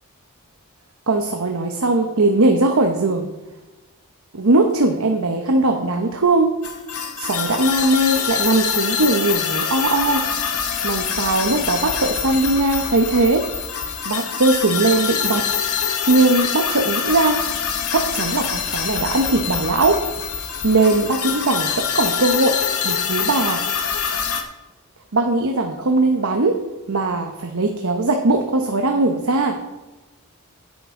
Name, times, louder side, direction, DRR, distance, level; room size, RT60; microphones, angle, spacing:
voice 1, 1.1-3.3 4.3-6.5 7.2-10.2 10.8-13.5 14.0-15.5 16.1-17.4 17.9-20.0 20.6-22.6 22.8-23.6 25.1-26.6 26.9-29.6, right 2 dB, 65° right, 3 dB, 0.9 m, -19 dB
sound 1, 6.6-24.4, left 7 dB, 75° left, 1.2 m, -25 dB
10.5 x 9.4 x 3.8 m, 1.1 s
head